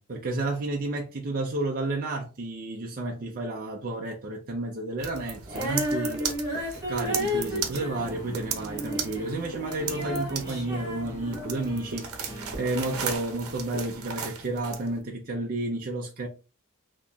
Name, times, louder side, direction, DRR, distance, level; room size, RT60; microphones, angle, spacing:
voice 1, 0.0-16.3, right 2 dB, 40° right, 0.5 m, -31 dB
sound 1, 5.0-14.9, right 6 dB, 70° right, 0.8 m, -36 dB
Female singing, 5.5-11.8 12.5-12.6, equal, 15° right, 1.9 m, -33 dB
sound 2, 7.0-13.2, equal, 20° left, 1.9 m, -44 dB
4.0 x 2.9 x 2.3 m
head